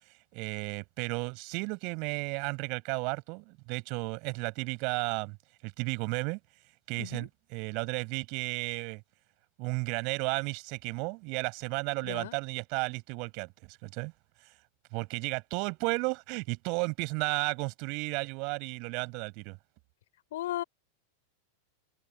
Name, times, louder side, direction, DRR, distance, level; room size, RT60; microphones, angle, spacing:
voice 1, 0.0-5.4 5.6-6.4 6.9-9.0 9.6-14.1 14.4-14.6 14.9-19.6, right 32 dB, 45° right, 6.7 m, -33 dB
voice 2, 12.0-12.4 20.3-20.6, left 14 dB, 55° left, 4.8 m, -36 dB
open air
figure-of-eight pair, 90°, 0 cm